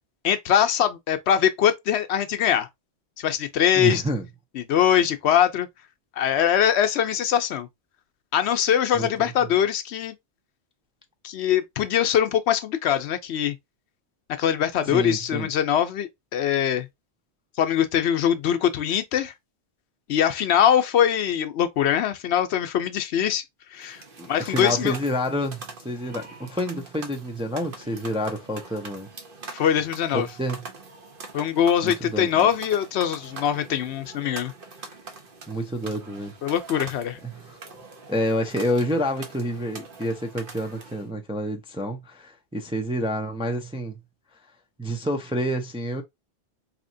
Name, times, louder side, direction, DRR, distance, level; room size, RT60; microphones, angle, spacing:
voice 1, 0.2-2.7 3.2-4.0 4.5-5.7 6.2-7.7 8.3-10.2 11.2-13.6 14.4-16.9 17.6-19.3 20.1-23.4 23.7-24.0 24.3-24.9 29.5-30.3 31.3-34.5 36.4-37.2, left 9 dB, 75° left, 0.9 m, -22 dB
voice 2, 3.8-4.2 8.9-9.3 14.8-15.5 24.2-29.1 30.1-30.6 31.8-32.5 35.5-36.3 37.2-37.6 38.1-43.9 44.8-46.0, equal, 10° right, 0.4 m, -28 dB
sound 1, 23.8-41.1, right 4 dB, 55° right, 1.0 m, -43 dB
4.2 x 2.8 x 2.6 m
omnidirectional pair, 1.1 m